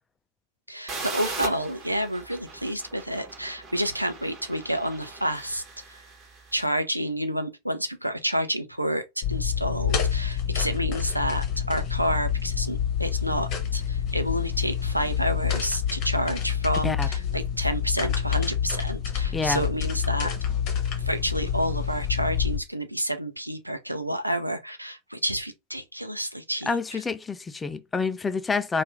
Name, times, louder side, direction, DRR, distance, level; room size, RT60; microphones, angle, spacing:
voice 1, 0.7-6.0 6.5-20.3 21.0-27.0, equal, 90° right, 0.5 m, -29 dB
sound 1, 0.9-6.6, right 3 dB, 30° right, 1.4 m, -39 dB
sound 2, 9.2-22.6, left 8 dB, 40° left, 1.1 m, -27 dB
voice 2, 26.7-28.8, left 4 dB, 15° left, 0.4 m, -27 dB
2.9 x 2.5 x 3.4 m
figure-of-eight pair, 90°, 0 cm